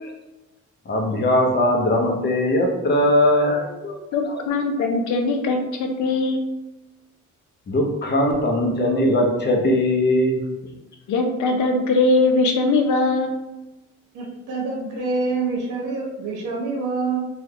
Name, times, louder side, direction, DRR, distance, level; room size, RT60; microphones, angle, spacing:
voice 1, 0.9-4.0 4.3-4.4 7.7-10.4, left 1 dB, 35° left, 1 dB, 0.7 m, -20 dB
voice 2, 4.1-6.5 11.1-13.4, left 3 dB, 75° left, 4 dB, 0.6 m, -21 dB
voice 3, 14.1-17.3, right 3 dB, 85° right, -2 dB, 1.0 m, -26 dB
3.3 x 2.3 x 2.9 m, 1.0 s
cardioid pair, 90°, 30 cm